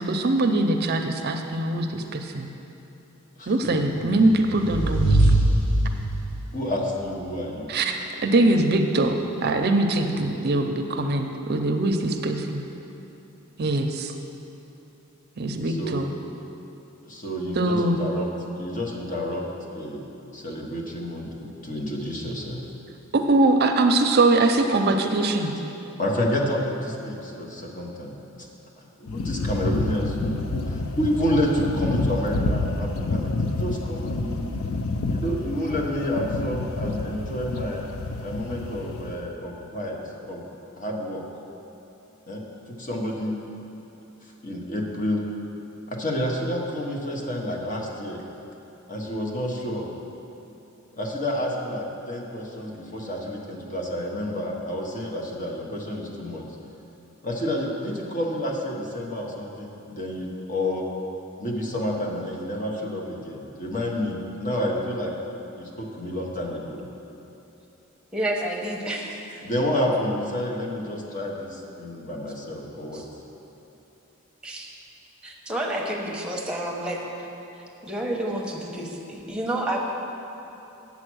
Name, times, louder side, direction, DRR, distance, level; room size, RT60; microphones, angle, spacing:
voice 1, 0.0-2.5 3.5-5.2 7.7-8.0 8.2-9.1 9.4-12.6 13.6-14.1 15.4-16.1 17.6-18.0 23.1-25.5, right 2 dB, 50° right, 5 dB, 0.6 m, -22 dB
voice 2, 3.4-4.0 6.5-7.7 15.6-16.0 17.0-18.3 18.6-20.1 20.3-22.6 26.0-28.2 29.0-34.5 35.1-37.8 38.2-40.0 40.3-40.4 40.8-41.2 42.3-42.4 42.7-43.4 44.4-45.2 45.9-48.2 48.9-49.9 51.0-56.5 57.2-60.9 61.4-65.1 65.6-66.8 69.4-73.0, left 1 dB, 40° left, -1 dB, 1.2 m, -29 dB
sound 1, 4.0-6.4, right 1 dB, 65° left, 1.9 m, -21 dB
sound 2, 29.1-39.2, left 2 dB, 85° left, 0.6 m, -29 dB
voice 3, 68.1-69.2 72.9-73.0 74.4-74.7 75.2-77.0 77.8-79.8, right 1 dB, 5° right, -2 dB, 1.1 m, -29 dB
8.7 x 7.2 x 6.2 m, 3.0 s
head